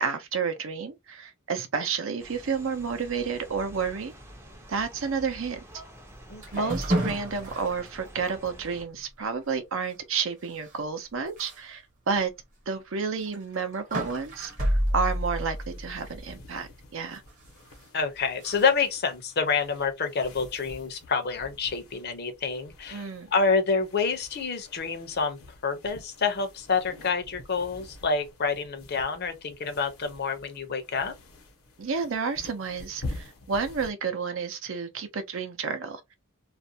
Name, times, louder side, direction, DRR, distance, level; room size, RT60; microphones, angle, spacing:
voice 1, 0.0-4.1 4.7-5.6 6.5-12.3 12.7-17.2 22.9-23.3 31.8-36.1, right 5 dB, 65° right, 0.6 m, -31 dB
sound 1, 2.2-8.9, equal, 10° right, 0.5 m, -48 dB
voice 2, 6.3-6.7 17.9-31.1, left 5 dB, 50° left, 0.6 m, -28 dB
sound 2, 6.4-7.9 8.4-8.5 8.9-9.0 10.6-10.8 11.4-11.6 12.1-12.2 13.2-16.4 17.3-17.9 18.4-18.7, equal, 40° right, 1.0 m, -30 dB
sound 3, 14.5-33.9, left 2 dB, 80° left, 0.8 m, -47 dB
2.5 x 2.1 x 2.7 m
head